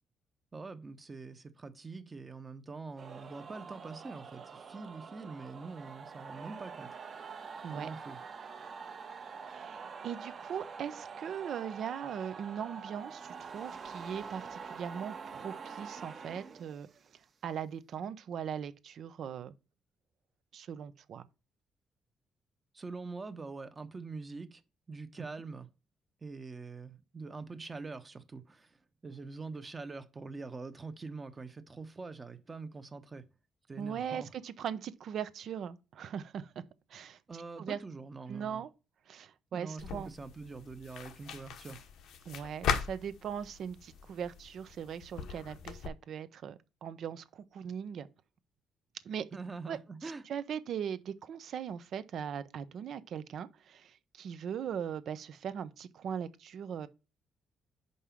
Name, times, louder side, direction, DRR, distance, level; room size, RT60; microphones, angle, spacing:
voice 1, 0.5-6.9 7.7-8.2 22.7-24.6 24.9-25.7 26.2-28.8 29.0-33.3 33.7-34.3 37.3-38.6 39.5-41.9 49.3-50.2, right 4 dB, 30° right, 0.9 m, -44 dB
sound 1, 3.0-17.1, right 5 dB, 50° right, 1.2 m, -46 dB
voice 2, 9.5-16.9 17.4-19.5 20.5-21.2 33.8-36.5 36.9-37.2 37.6-37.8 38.3-38.7 39.1-40.1 42.3-48.1 49.0-49.3 49.7-56.9, right 8 dB, 65° right, 0.7 m, -40 dB
sound 2, 39.8-45.9, left 7 dB, 80° left, 1.0 m, -39 dB
5.5 x 4.9 x 5.7 m
cardioid pair, 90°, 0 cm